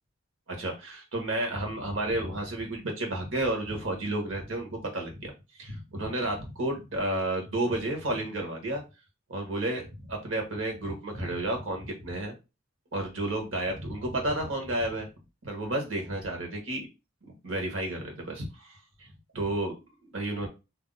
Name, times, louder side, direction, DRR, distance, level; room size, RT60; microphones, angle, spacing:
voice 1, 0.5-5.3 5.6-8.8 9.3-9.8 10.1-12.3 12.9-15.1 15.4-16.9 17.3-19.1 19.3-19.7 20.0-20.5, right 1 dB, 70° right, 2 dB, 1.1 m, -31 dB
2.6 x 2.0 x 3.7 m, 0.27 s
head